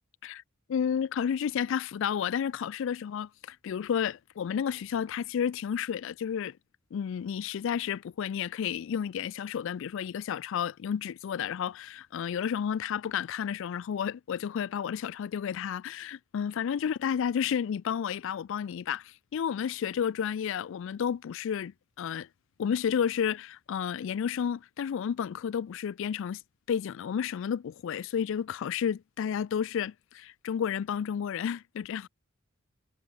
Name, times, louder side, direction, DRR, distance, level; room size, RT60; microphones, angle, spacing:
voice 1, 0.7-6.5 6.9-21.7 22.0-22.3 22.6-26.4 26.7-32.1, left 8 dB, 65° left, 0.3 m, -31 dB
head